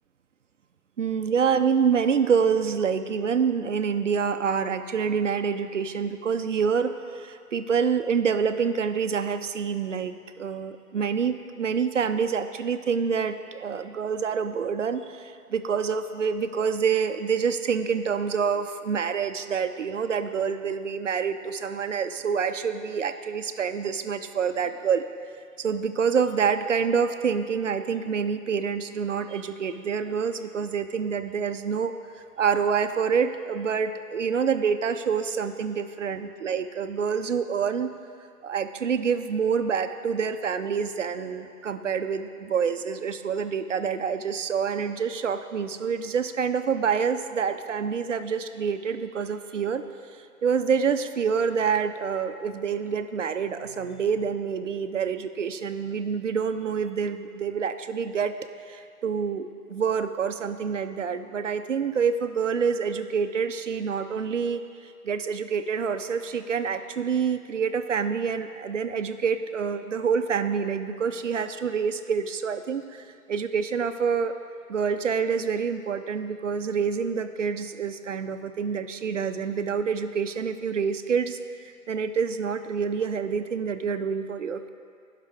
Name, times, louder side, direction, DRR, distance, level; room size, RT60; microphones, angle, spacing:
voice 1, 1.0-25.0 25.6-31.9 32.4-37.9 38.4-49.8 50.4-58.4 58.7-74.3 74.7-81.4 81.9-84.7, right 6 dB, 55° right, 9 dB, 0.5 m, -27 dB
16.5 x 5.7 x 3.5 m, 2.4 s
hypercardioid pair, 165°, 46 cm